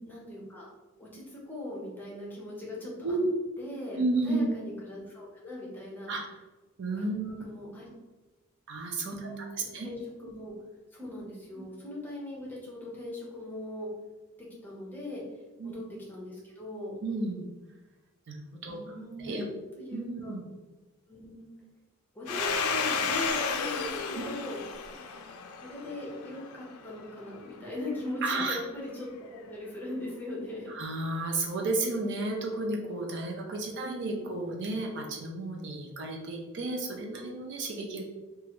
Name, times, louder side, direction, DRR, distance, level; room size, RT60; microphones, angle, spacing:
voice 1, 0.1-0.7 1.0-3.2 3.6-6.1 7.0-7.9 9.0-10.5 10.9-13.9 14.4-15.2 15.6-15.8 16.1-16.9 18.7-19.5 19.8-20.3 21.1-21.5 22.1-24.6 25.6-30.7 33.7-34.3, left 1 dB, 10° left, -5 dB, 0.7 m, -40 dB
voice 2, 4.0-4.5 6.1-6.2 6.8-7.4 8.7-9.4 9.7-9.9 10.2-10.3 11.6-11.7 15.6-15.7 17.0-17.5 18.3-18.8 19.2-19.4 19.8-20.5 24.1-24.2 28.2-28.6 30.7-38.0, right 2 dB, 55° right, 1 dB, 0.5 m, -32 dB
Domestic sounds home sounds, 22.3-26.7, left 5 dB, 90° left, 0.4 m, -32 dB
3.0 x 2.4 x 2.9 m, 1.2 s
head